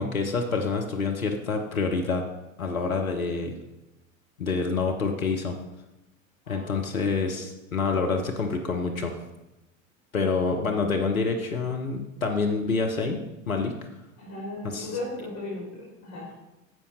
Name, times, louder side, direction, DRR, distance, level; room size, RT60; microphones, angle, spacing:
voice 1, 0.0-2.2 2.6-3.6 4.4-5.5 6.5-9.1 10.1-13.7 14.6-14.9, left 4 dB, 85° left, 3 dB, 0.9 m, -27 dB
voice 2, 6.4-7.4 14.2-16.3, left 2 dB, 40° left, -5 dB, 3.9 m, -37 dB
10.5 x 7.1 x 4.1 m, 0.97 s
figure-of-eight pair, 80°, 41 cm